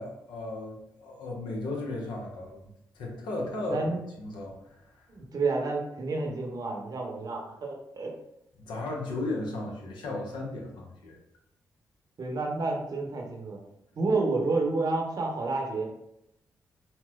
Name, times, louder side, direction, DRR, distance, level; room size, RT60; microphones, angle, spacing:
voice 1, 0.0-2.7 2.9-3.9 4.2-5.1 8.7-11.2, left 2 dB, 75° left, -1 dB, 0.7 m, -35 dB
voice 2, 3.7-4.0 5.1-8.1 12.2-13.6 14.0-15.8, right 3 dB, 55° right, 1 dB, 0.8 m, -29 dB
4.1 x 2.1 x 2.3 m, 0.80 s
hypercardioid pair, 40°, 8 cm